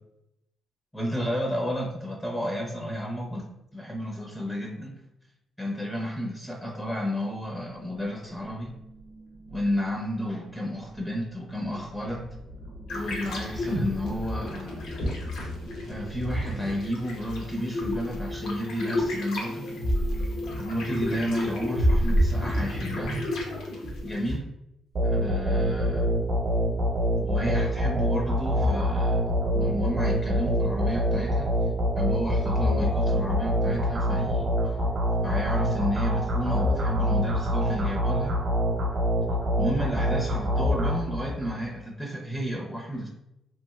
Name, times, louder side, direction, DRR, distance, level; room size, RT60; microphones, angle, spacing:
voice 1, 0.9-3.5 3.7-4.9 5.6-8.8 9.5-12.3 12.9-14.9 15.9-19.7 20.6-23.2 24.0-24.5 25.0-26.1 27.2-31.5 32.0-34.5 35.2-38.4 39.6-43.1, equal, 10° left, 0 dB, 0.5 m, -32 dB
sound 1, 7.4-18.1 18.5-23.6, equal, 90° right, 0.6 m, -43 dB
sound 2, 12.9-24.4, equal, 80° left, 0.7 m, -29 dB
sound 3, 25.0-41.6, equal, 50° right, 0.8 m, -25 dB
3.0 x 2.4 x 2.3 m, 0.85 s
cardioid pair, 90°, 0 cm